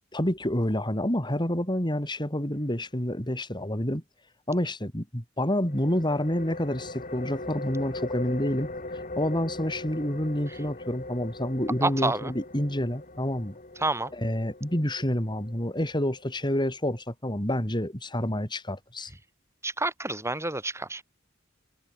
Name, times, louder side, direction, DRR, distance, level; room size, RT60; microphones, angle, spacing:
voice 1, 0.1-4.0 4.5-8.7 9.2-13.6 14.1-19.1, left 1 dB, 25° left, 5.5 m, -28 dB
sound 1, 5.7-17.0, left 2 dB, 40° left, 6.0 m, -40 dB
voice 2, 11.8-12.3 13.8-14.1 19.6-21.0, right 2 dB, 15° right, 7.3 m, -28 dB
head